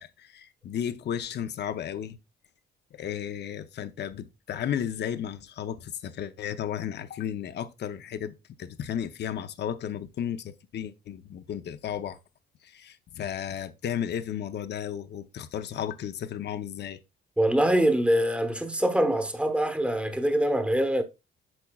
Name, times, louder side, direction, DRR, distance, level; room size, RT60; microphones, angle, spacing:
voice 1, 0.0-2.2 2.9-12.2 12.6-17.0, left 9 dB, 60° left, 0.7 m, -34 dB
voice 2, 17.4-21.0, right 1 dB, 5° right, 1.1 m, -24 dB
8.8 x 5.7 x 2.3 m
cardioid pair, 90°, 20 cm